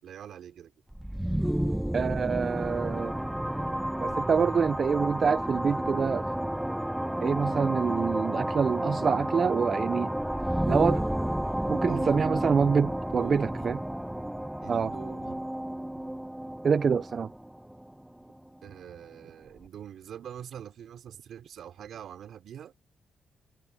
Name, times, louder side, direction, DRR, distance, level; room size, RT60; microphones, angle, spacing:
voice 1, 0.0-0.7 11.9-12.2 12.7-13.7 14.6-15.4 18.6-22.7, right 9 dB, 70° right, 4.6 m, -44 dB
sound 1, 0.9-18.6, right 1 dB, 5° right, 0.9 m, -31 dB
voice 2, 1.9-3.2 4.0-6.3 7.2-10.1 10.7-11.0 11.7-13.8 14.7-14.9 16.6-17.3, right 6 dB, 45° right, 0.3 m, -26 dB
cardioid pair, 100°, 0 cm